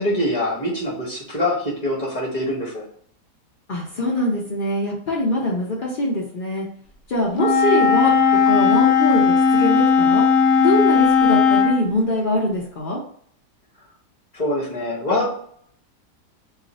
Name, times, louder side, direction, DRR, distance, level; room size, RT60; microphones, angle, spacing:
voice 1, 0.0-2.9 14.3-15.3, left 1 dB, 35° left, -5 dB, 0.7 m, -24 dB
voice 2, 3.7-6.7 7.1-8.1 8.4-10.2 10.6-13.0, left 1 dB, 90° left, -3 dB, 0.4 m, -23 dB
Wind instrument woodwind instrument, 7.3-11.8, left 5 dB, 70° left, 1.0 m, -16 dB
2.5 x 2.4 x 3.9 m, 0.63 s
omnidirectional pair, 1.8 m